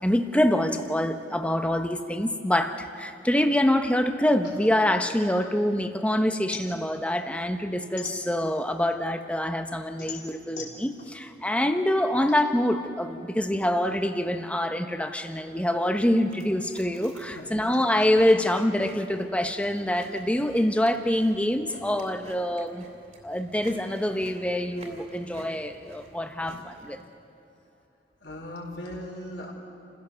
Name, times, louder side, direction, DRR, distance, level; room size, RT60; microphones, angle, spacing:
voice 1, 0.0-22.8 23.2-27.0, left 1 dB, 5° left, 7 dB, 1.1 m, -25 dB
sound 1, 4.4-5.9 6.2-8.8 9.2-12.4, left 6 dB, 50° left, 3.3 m, -42 dB
Chewing mastication, 16.2-27.0, right 1 dB, 40° right, 3.0 m, -49 dB
voice 2, 17.3-17.8 28.2-29.5, left 1 dB, 75° left, 0 dB, 4.5 m, -38 dB
29.0 x 16.0 x 7.0 m, 2.8 s
head